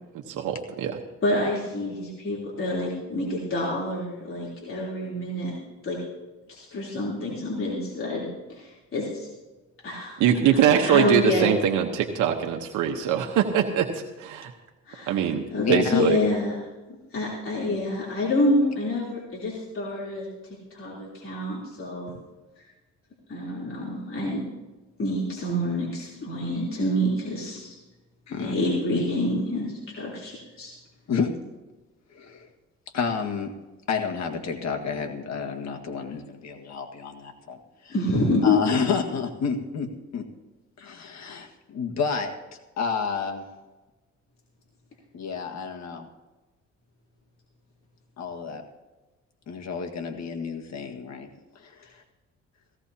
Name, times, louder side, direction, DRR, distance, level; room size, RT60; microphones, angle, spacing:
voice 1, 0.3-1.0 10.2-13.9 14.2-14.5 15.1-16.2, right 9 dB, 90° right, 3 dB, 1.0 m, -23 dB
voice 2, 1.2-5.6 5.8-6.0 6.5-9.3 9.8-10.1 10.8-11.6 14.9-15.2 15.5-16.6 17.1-22.1 23.3-24.4 25.0-27.8 28.4-30.7 37.9-38.6, left 1 dB, 45° left, -5 dB, 3.4 m, -27 dB
voice 3, 15.6-16.0 28.3-28.6 31.1-31.3 32.1-32.5 32.9-33.5 33.9-37.6 37.8-37.9 38.4-40.2 40.8-42.3 42.8-43.4 45.1-46.1 48.2-48.6 49.5-51.3 51.5-51.9, left 6 dB, 60° left, 4 dB, 1.8 m, -30 dB
17.0 x 16.0 x 2.8 m, 1.2 s
cardioid pair, 90°, 30 cm